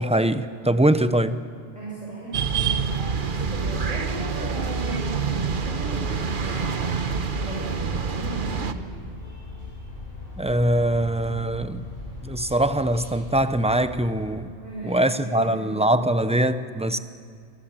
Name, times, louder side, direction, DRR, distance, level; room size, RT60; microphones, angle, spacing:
voice 1, 0.0-1.4 10.4-11.9 12.2-14.5 14.8-17.0, right 1 dB, 5° right, 11 dB, 0.7 m, -22 dB
voice 2, 1.7-9.0 14.5-15.7 16.8-17.0, right 1 dB, 30° left, -7 dB, 7.1 m, -37 dB
sound 1, 2.3-8.7, right 5 dB, 45° right, 1.2 m, -26 dB
sound 2, 6.6-14.3, left 2 dB, 55° left, 7.6 m, -40 dB
27.5 x 23.0 x 7.5 m, 2.3 s
omnidirectional pair, 1.2 m